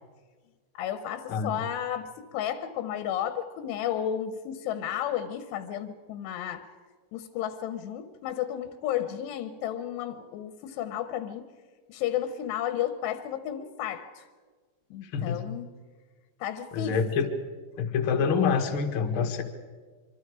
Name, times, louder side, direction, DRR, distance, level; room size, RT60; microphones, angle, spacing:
voice 1, 0.7-6.7 7.1-11.5 11.9-14.3 14.9-15.7 16.4-17.0, left 10 dB, 90° left, 10 dB, 3.2 m, -33 dB
voice 2, 15.0-15.4 16.7-17.3 17.8-19.4, left 6 dB, 55° left, 5 dB, 1.4 m, -26 dB
25.0 x 25.0 x 4.8 m, 1.5 s
omnidirectional pair, 4.8 m